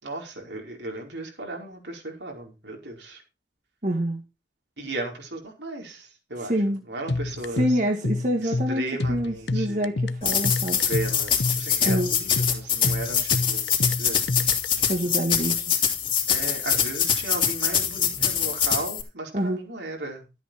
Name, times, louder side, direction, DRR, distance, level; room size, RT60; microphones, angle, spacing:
voice 1, 0.0-3.2 4.8-7.8 8.4-9.9 10.7-13.6 14.0-14.2 16.3-20.2, right 2 dB, 80° right, 0 dB, 4.8 m, -35 dB
voice 2, 3.8-4.2 6.4-6.8 7.6-8.8 9.1-10.8 11.8-12.1 14.9-15.6 19.3-19.6, equal, 45° right, 2 dB, 1.9 m, -26 dB
sound 1, 7.1-14.7, left 2 dB, 75° left, 0.8 m, -28 dB
sound 2, 10.2-19.0, left 8 dB, 30° left, 2.8 m, -24 dB
13.5 x 8.3 x 4.6 m, 0.29 s
head